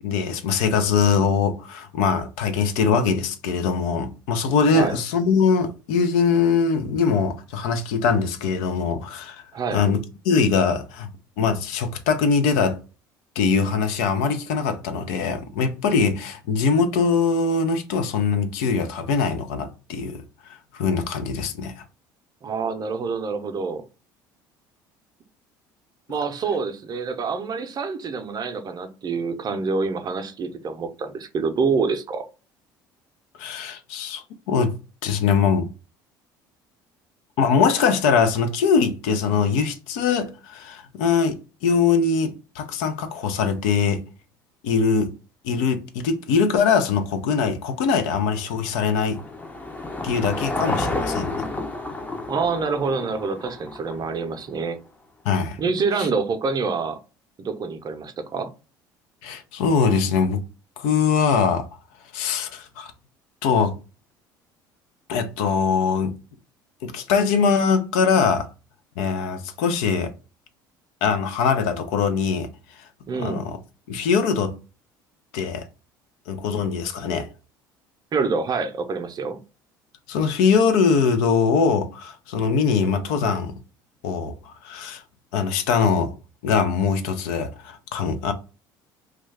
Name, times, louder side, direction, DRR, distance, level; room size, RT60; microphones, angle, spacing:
voice 1, 0.0-9.4 9.7-11.1 11.4-12.8 13.4-20.2 20.7-21.8 33.4-34.8 35.0-35.7 37.4-44.1 44.6-45.1 45.4-49.2 50.0-51.4 55.2-55.6 59.2-60.4 60.8-61.7 62.1-62.9 63.4-63.8 65.1-66.2 66.8-68.5 69.0-70.1 71.0-72.5 73.1-73.5 73.9-74.6 75.3-75.7 76.3-77.3 80.1-83.5 84.0-85.0 85.3-86.1 86.4-88.3, left 5 dB, 75° left, 0.5 m, -22 dB
voice 2, 22.4-23.8 26.1-32.3 52.3-54.8 55.6-57.0 57.4-58.5 73.1-73.5 78.1-79.4, right 4 dB, 40° right, 0.6 m, -26 dB
Car passing by / Engine, 48.3-54.6, left 2 dB, 15° left, 0.6 m, -31 dB
2.3 x 2.2 x 3.3 m
hypercardioid pair, 70°, 11 cm